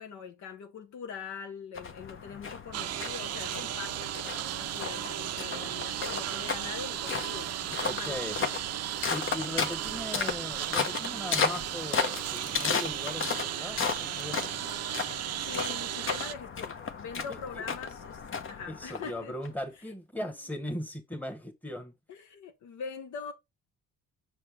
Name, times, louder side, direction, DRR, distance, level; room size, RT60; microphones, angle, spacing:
voice 1, 0.0-4.1 4.4-8.5 15.4-19.3 22.1-23.3, left 6 dB, 70° left, 1.1 m, -42 dB
sound 1, 1.7-19.5, left 5 dB, 45° left, 1.0 m, -35 dB
Engine, 2.7-16.3, right 12 dB, 55° right, 0.5 m, -35 dB
voice 2, 7.8-8.4 9.1-14.7 17.3-17.4 18.7-21.9, left 1 dB, 5° left, 1.4 m, -39 dB
6.3 x 4.4 x 3.6 m
cardioid pair, 90°, 30 cm